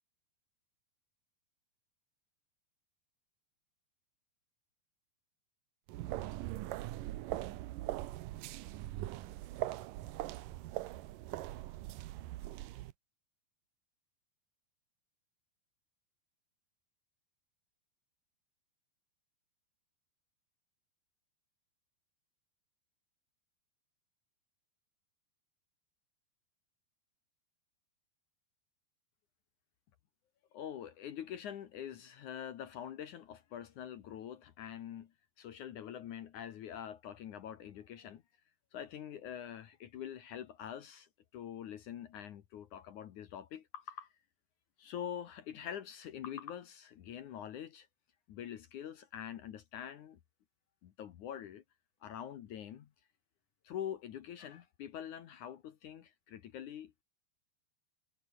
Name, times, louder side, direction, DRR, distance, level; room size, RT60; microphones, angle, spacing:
sound 1, 5.9-12.9, right 16 dB, 80° right, 2.0 m, -41 dB
voice 1, 30.5-35.1 35.4-38.2 38.7-44.1 44.8-47.9 48.3-50.2 50.8-51.6 52.0-52.9 53.6-57.0, left 9 dB, 65° left, 2.1 m, -45 dB
omnidirectional pair, 5.0 m